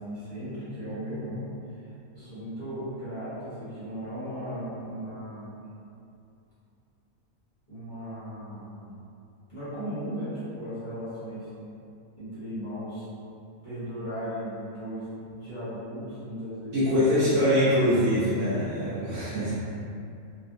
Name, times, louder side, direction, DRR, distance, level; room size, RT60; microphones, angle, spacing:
voice 1, 0.0-5.6 7.7-8.9 9.5-11.5 12.2-13.1 13.6-17.4, equal, 35° left, -14 dB, 1.1 m, -37 dB
voice 2, 16.7-19.5, equal, 65° right, -10 dB, 0.9 m, -23 dB
2.7 x 2.5 x 2.6 m, 2.6 s
omnidirectional pair, 1.6 m